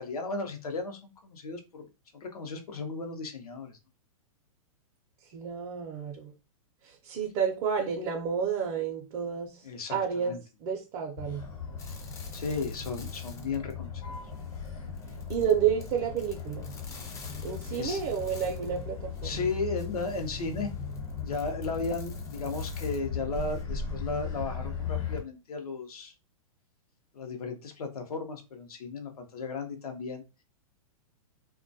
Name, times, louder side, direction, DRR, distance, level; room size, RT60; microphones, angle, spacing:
voice 1, 0.0-1.9 2.1-3.8 9.6-10.0 10.2-10.4 12.3-14.1 17.0-17.2 17.7-18.0 19.2-20.7 21.2-26.1 27.1-30.2, left 3 dB, 85° left, 0.6 m, -35 dB
voice 2, 5.3-6.3 6.8-9.6 9.9-10.3 10.6-11.4 15.3-16.7 17.4-19.5, right 7 dB, 40° right, 0.5 m, -30 dB
Motor vehicle (road), 11.2-25.2, left 5 dB, 70° left, 1.0 m, -38 dB
sound 1, 11.8-13.8 14.1-18.8 19.1-23.6, left 4 dB, 15° left, 0.4 m, -51 dB
2.2 x 2.2 x 2.5 m
hypercardioid pair, 120°, 19 cm